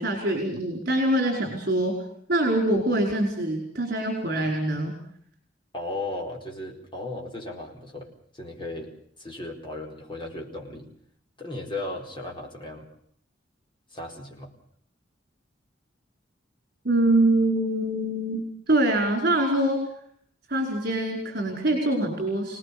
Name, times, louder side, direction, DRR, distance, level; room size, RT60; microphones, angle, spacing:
voice 1, 0.0-1.9 2.3-4.9 16.8-19.8 20.5-22.6, right 1 dB, 50° right, 1 dB, 5.0 m, -24 dB
voice 2, 5.7-8.1 8.3-8.9 9.2-10.9 11.4-12.9 13.9-14.5, left 2 dB, 25° left, 1 dB, 4.7 m, -36 dB
27.0 x 19.0 x 7.0 m, 0.63 s
head